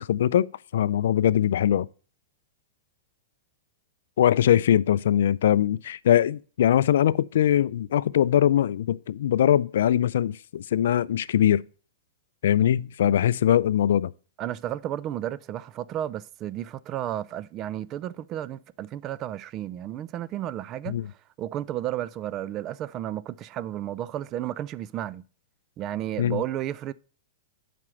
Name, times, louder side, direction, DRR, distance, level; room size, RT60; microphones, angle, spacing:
voice 1, 0.0-1.9 4.2-11.6 12.4-14.1 20.9-21.0 26.2-26.4, left 10 dB, 75° left, 0.3 m, -22 dB
voice 2, 14.4-21.0 21.4-25.2 25.8-26.9, right 12 dB, 30° right, 0.3 m, -32 dB
7.5 x 5.0 x 6.2 m
hypercardioid pair, 150°, 0 cm